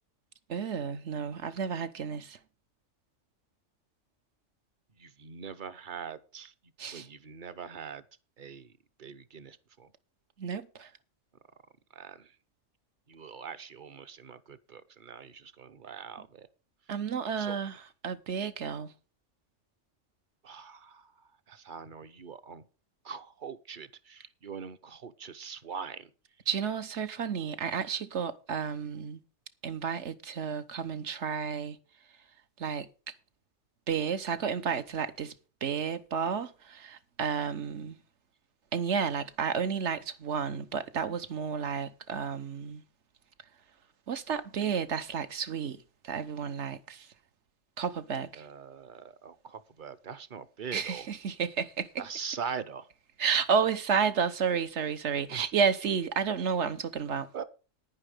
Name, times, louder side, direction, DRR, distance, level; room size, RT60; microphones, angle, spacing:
voice 1, 0.5-2.4 6.8-7.1 10.4-10.9 16.9-17.7 18.0-18.9 26.5-29.2 29.6-31.8 32.6-32.9 33.9-35.3 35.6-38.0 38.7-42.8 44.1-47.1 47.8-48.5 50.7-51.9 53.2-57.3, right 6 dB, 70° right, 1.3 m, -31 dB
voice 2, 4.9-8.0 8.4-9.9 11.9-12.4 13.1-16.5 17.4-17.6 20.4-22.7 23.0-26.1 48.3-51.1 52.0-52.9 55.3-55.5 57.3-57.4, right 6 dB, 45° right, 0.9 m, -42 dB
10.0 x 10.0 x 5.0 m
omnidirectional pair, 1.3 m